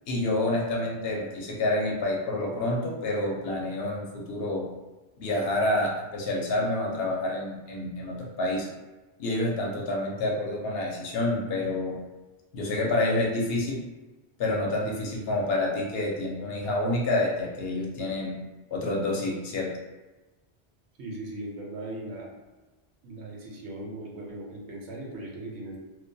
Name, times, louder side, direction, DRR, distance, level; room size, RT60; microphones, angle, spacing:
voice 1, 0.1-4.7 5.2-8.7 9.2-12.0 12.5-13.8 14.4-18.4 18.7-19.7, left 2 dB, 70° left, -2 dB, 0.7 m, -28 dB
voice 2, 21.0-22.3 23.0-25.8, right 1 dB, 80° right, -1 dB, 0.9 m, -38 dB
2.3 x 2.1 x 2.6 m, 1.2 s
omnidirectional pair, 1.1 m